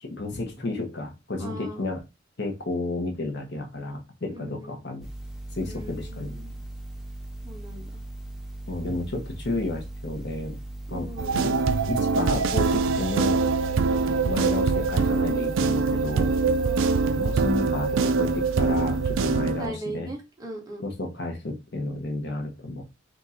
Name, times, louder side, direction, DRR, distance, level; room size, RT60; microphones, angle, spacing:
voice 1, 0.0-2.0 2.4-5.1 5.5-6.3 8.7-10.6 10.9-11.6 11.9-13.4 14.2-16.3 17.1-20.1 20.8-22.8, left 2 dB, 55° left, 3 dB, 1.0 m, -32 dB
voice 2, 1.4-1.9 4.3-4.8 5.6-6.5 7.4-8.0 8.9-9.0 10.9-11.3 16.6-17.2 19.6-20.8, right 1 dB, 20° right, -1 dB, 1.1 m, -39 dB
sound 1, 5.0-19.4, right 1 dB, ahead, 0.7 m, -38 dB
sound 2, 11.2-19.7, right 4 dB, 75° right, 0.4 m, -24 dB
3.6 x 2.7 x 4.2 m, 0.25 s
head